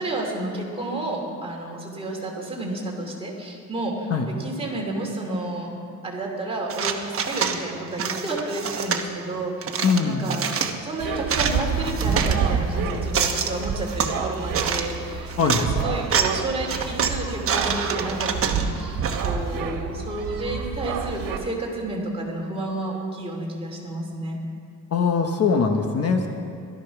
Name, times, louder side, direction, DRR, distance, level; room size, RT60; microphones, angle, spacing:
voice 1, 0.0-5.7 6.0-10.5 10.8-24.4, right 2 dB, 15° right, -2 dB, 2.8 m, -31 dB
sound 1, 6.7-7.6 8.0-9.0 9.6-10.8 11.1-12.4 12.9-14.2 14.5-15.0 15.3-15.7 16.0-16.4 16.7-19.3, right 7 dB, 40° right, 1.1 m, -26 dB
voice 2, 9.8-10.3 15.4-15.7 24.9-26.3, left 5 dB, 45° left, 4 dB, 1.0 m, -21 dB
sound 2, 11.0-21.4, right 6 dB, 75° right, 1.5 m, -28 dB
16.5 x 13.0 x 5.9 m, 2.5 s
cardioid pair, 160°, 34 cm